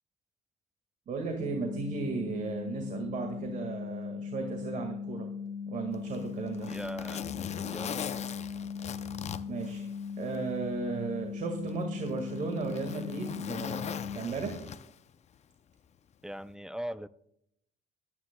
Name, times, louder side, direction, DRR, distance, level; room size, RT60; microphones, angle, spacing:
voice 1, 1.1-5.3 5.7-6.7 9.5-9.9 10.2-14.6, right 4 dB, 50° right, 4 dB, 1.8 m, -35 dB
sound 1, 1.4-14.2, left 6 dB, 25° left, 3.2 m, -39 dB
Zipper (clothing), 5.9-10.4 10.8-10.9 11.7-15.1 16.3-16.5, left 8 dB, 40° left, 0.6 m, -40 dB
voice 2, 6.7-7.3 7.7-8.2 16.2-17.1, right 1 dB, 5° right, 15 dB, 0.4 m, -40 dB
21.0 x 9.7 x 2.2 m, 0.76 s
cardioid pair, 110°, 17 cm